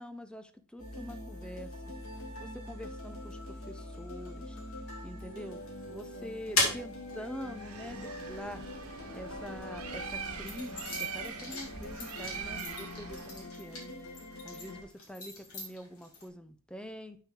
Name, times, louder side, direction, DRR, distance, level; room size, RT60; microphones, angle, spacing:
voice 1, 0.0-1.7 2.4-4.6 5.0-5.6 5.9-8.7 9.1-13.9 14.4-17.2, equal, 5° left, 10 dB, 0.6 m, -45 dB
sound 1, 0.8-14.8, left 1 dB, 65° left, 2.2 m, -44 dB
sound 2, 5.8-9.4 10.0-16.3, left 2 dB, 85° left, 3.2 m, -38 dB
Bird, 7.5-13.5, right 6 dB, 80° right, 1.3 m, -42 dB
8.6 x 6.0 x 3.7 m, 0.43 s
head